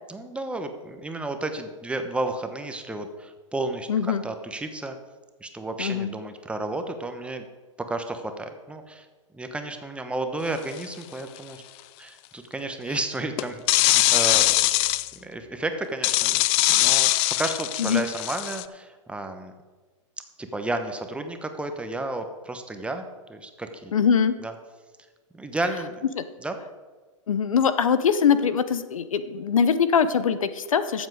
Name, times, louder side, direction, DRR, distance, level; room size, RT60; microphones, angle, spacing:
voice 1, 0.1-5.0 5.4-7.4 7.9-9.1 9.3-11.6 12.0-14.6 15.1-16.4 16.7-17.1 17.4-19.5 20.4-23.0 23.3-23.9 24.4-24.5 25.3-26.0 26.4-26.6, right 2 dB, 5° right, 6 dB, 1.0 m, -32 dB
voice 2, 3.9-4.2 5.8-6.1 17.8-18.1 23.9-24.3 26.2-26.3 27.3-31.1, left 7 dB, 85° left, 13 dB, 0.8 m, -22 dB
sound 1, 10.8-11.0 13.4-15.1 16.0-18.6, left 18 dB, 35° left, 0.4 m, -21 dB
13.0 x 7.4 x 4.8 m, 1.3 s
hypercardioid pair, 120°, 17 cm